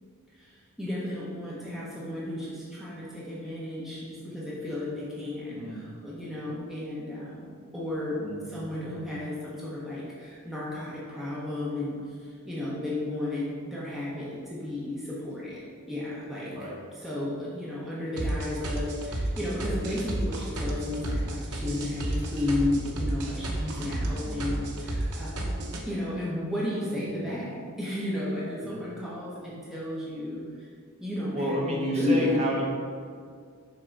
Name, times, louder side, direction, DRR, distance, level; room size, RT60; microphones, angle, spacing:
voice 1, 0.4-8.2 8.4-16.5 16.9-30.7 31.0-32.4, left 1 dB, ahead, -8 dB, 0.9 m, -33 dB
voice 2, 5.5-5.8 8.2-9.0 16.5-16.7 24.2-24.5 25.9-26.0 26.9-27.2 28.6-28.8 31.3-32.6, equal, 30° right, -3 dB, 1.1 m, -32 dB
sound 1, 18.2-25.8, right 1 dB, 85° right, 0.9 m, -32 dB
6.3 x 3.8 x 4.5 m, 2.1 s
head